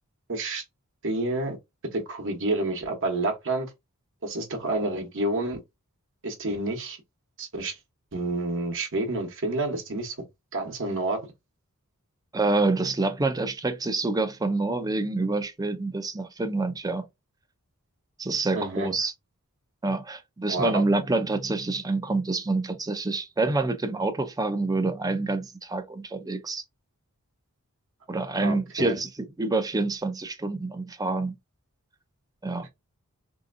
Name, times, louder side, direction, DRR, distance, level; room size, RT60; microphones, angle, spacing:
voice 1, 0.3-0.6 1.0-1.6 1.9-3.7 4.2-5.6 6.2-7.0 7.4-7.8 8.1-10.1 10.5-11.3 18.5-18.9 20.5-20.7 28.3-28.9, right 2 dB, 60° right, 1.0 m, -29 dB
voice 2, 12.3-17.1 18.2-19.1 19.8-26.6 28.1-31.3 32.4-32.7, right 3 dB, 15° right, 0.4 m, -27 dB
3.3 x 2.7 x 2.5 m
head